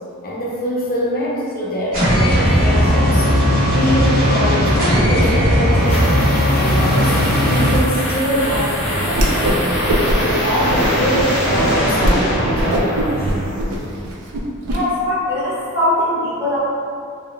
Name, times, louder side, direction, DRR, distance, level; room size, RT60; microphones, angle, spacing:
voice 1, 0.2-3.3 3.7-6.1 6.5-9.7 10.2-13.3, equal, 40° left, -6 dB, 0.7 m, -23 dB
sound 1, 1.9-7.8, equal, 45° right, 1.3 m, -16 dB
sound 2, 5.2-14.0, equal, 90° left, 1.1 m, -22 dB
Whoosh swoosh swish, 9.1-9.6 9.9-10.4 10.8-11.3 11.6-11.7 12.0-12.2 12.5-14.8, right 1 dB, 70° right, 0.4 m, -20 dB
voice 2, 14.7-16.6, left 1 dB, 15° right, -12 dB, 1.0 m, -20 dB
3.6 x 2.2 x 2.2 m, 2.3 s
head